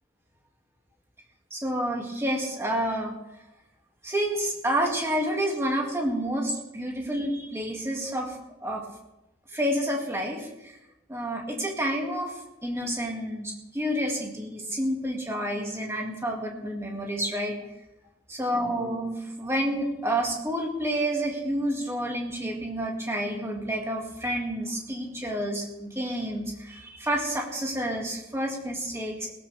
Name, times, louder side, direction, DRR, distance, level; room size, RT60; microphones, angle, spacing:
voice 1, 1.5-3.1 4.0-8.8 9.5-10.7 11.1-17.6 18.3-29.3, equal, 15° right, 0 dB, 2.3 m, -29 dB
20.5 x 13.0 x 3.5 m, 0.94 s
head